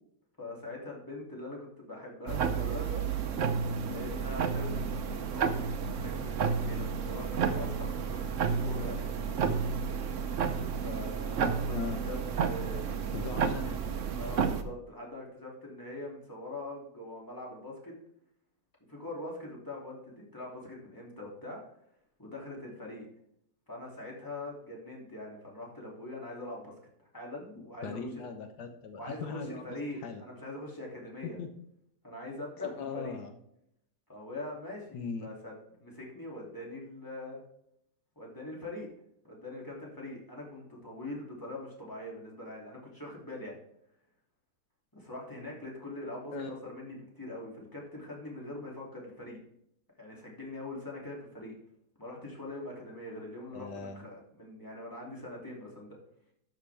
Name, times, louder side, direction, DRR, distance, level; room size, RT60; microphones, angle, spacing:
voice 1, 0.4-3.0 3.9-9.1 10.8-12.2 12.4-12.8 14.1-17.9 18.9-21.6 22.2-23.1 23.7-26.7 27.1-28.3 29.0-31.4 32.0-33.2 34.1-37.4 38.2-38.9 39.2-43.6 44.9-49.4 50.0-51.5 52.0-56.0, left 1 dB, 10° left, -3 dB, 2.8 m, -43 dB
sound 1, 2.3-14.6, right 6 dB, 60° right, 1.0 m, -31 dB
voice 2, 11.7-12.0 13.1-13.8 27.8-30.2 31.4-31.6 32.6-33.4 34.9-35.3 46.3-46.5 53.5-54.1, left 4 dB, 80° left, 6 dB, 1.6 m, -39 dB
12.5 x 6.6 x 3.4 m, 0.73 s
omnidirectional pair, 1.7 m